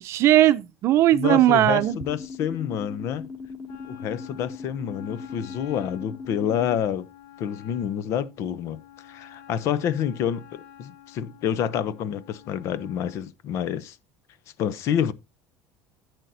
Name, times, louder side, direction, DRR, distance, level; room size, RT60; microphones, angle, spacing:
voice 1, 0.0-2.0, right 13 dB, 50° right, 0.7 m, -18 dB
voice 2, 1.1-3.3 3.9-7.1 7.4-8.8 9.1-14.0 14.6-15.1, left 9 dB, 55° left, 0.7 m, -28 dB
sound 1, 1.8-6.8, left 4 dB, 15° left, 2.3 m, -39 dB
Wind instrument woodwind instrument, 3.7-13.3, left 11 dB, 70° left, 1.1 m, -50 dB
10.5 x 8.1 x 2.6 m
cardioid pair, 135°, 6 cm